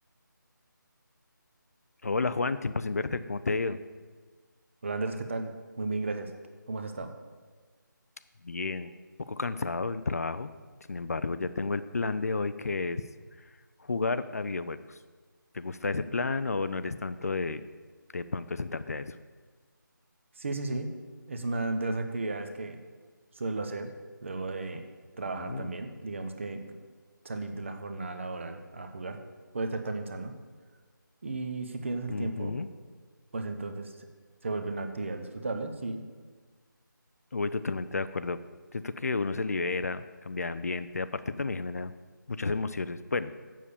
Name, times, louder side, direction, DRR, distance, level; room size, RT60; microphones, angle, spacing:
voice 1, 2.0-3.8 8.4-8.9 9.2-10.5 10.9-13.0 13.8-15.0 15.5-17.6 18.1-19.2 25.4-25.7 32.1-32.7 37.3-38.4 38.7-41.9 42.3-43.3, left 3 dB, 50° left, 13 dB, 0.4 m, -31 dB
voice 2, 4.8-6.3 6.7-7.1 20.4-20.9 21.3-22.8 23.4-23.9 24.2-24.8 25.2-26.6 27.2-29.2 29.5-30.3 31.2-32.5 33.3-33.9 34.4-36.0, right 3 dB, 35° right, 6 dB, 0.9 m, -34 dB
7.5 x 7.0 x 8.3 m, 1.5 s
figure-of-eight pair, 170°, 11 cm